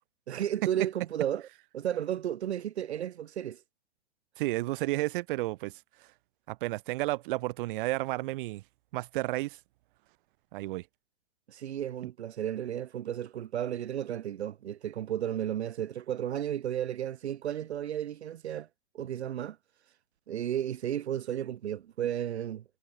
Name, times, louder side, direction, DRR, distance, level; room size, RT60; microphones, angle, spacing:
voice 1, 0.3-1.5 1.7-3.6 11.5-18.7 18.9-19.6 20.3-22.6, right 10 dB, 75° right, 1.0 m, -33 dB
voice 2, 4.4-5.7 6.5-8.6 8.9-9.6 10.5-10.8 12.0-12.1, right 19 dB, 50° right, 1.3 m, -32 dB
hypercardioid pair, 115°, 33 cm